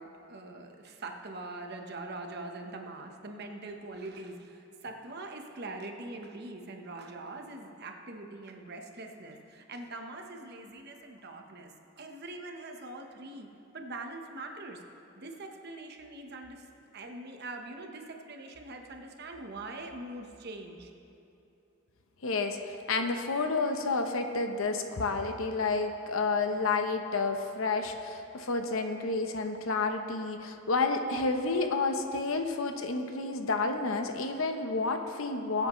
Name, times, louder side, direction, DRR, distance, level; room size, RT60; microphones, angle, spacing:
voice 1, 0.0-11.7 12.0-13.5 13.7-14.8 15.1-16.7 16.9-20.9, right 2 dB, 50° right, 3 dB, 1.0 m, -43 dB
voice 2, 22.2-35.7, left 3 dB, 80° left, 6 dB, 0.8 m, -30 dB
21.5 x 8.0 x 3.1 m, 2.9 s
head